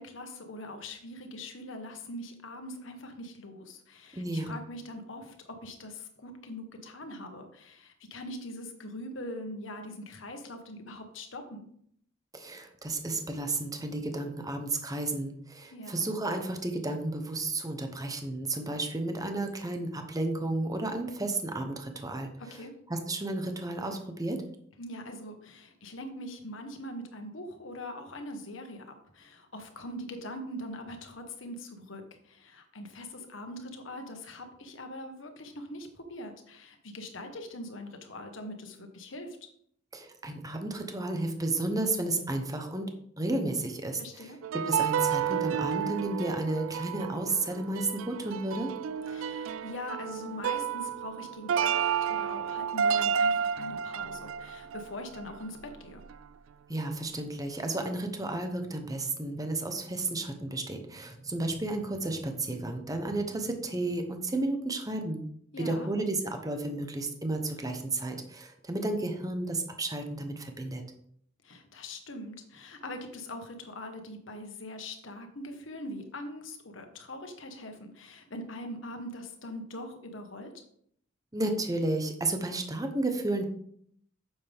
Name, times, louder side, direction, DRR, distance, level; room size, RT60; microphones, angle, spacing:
voice 1, 0.0-11.7 15.7-16.1 22.4-22.7 24.8-39.4 44.0-44.4 49.1-56.0 65.5-65.9 71.4-80.5, left 1 dB, 70° left, 5 dB, 1.5 m, -42 dB
voice 2, 4.1-4.5 12.3-22.3 22.9-24.4 39.9-42.9 43.2-48.7 56.7-65.2 65.6-70.8 81.3-83.5, right 2 dB, 20° right, 5 dB, 1.1 m, -32 dB
sound 1, 44.4-55.7 56.0-56.1, right 7 dB, 80° right, 0.4 m, -31 dB
9.1 x 7.1 x 3.6 m, 0.67 s
head